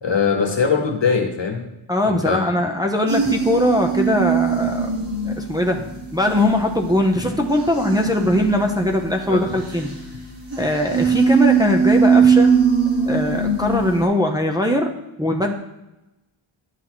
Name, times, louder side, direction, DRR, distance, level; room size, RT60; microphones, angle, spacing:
voice 1, 0.0-1.6 2.0-2.4 9.3-9.5, left 5 dB, 60° left, 3 dB, 1.3 m, -21 dB
voice 2, 1.9-5.8 6.1-9.9 10.6-12.5 13.1-14.9 15.2-15.5, left 1 dB, 10° right, 1 dB, 0.7 m, -21 dB
sound 1, 3.1-14.1, right 5 dB, 55° right, 2.5 m, -21 dB
11.0 x 6.2 x 3.1 m, 0.95 s
wide cardioid pair, 80°, 50 cm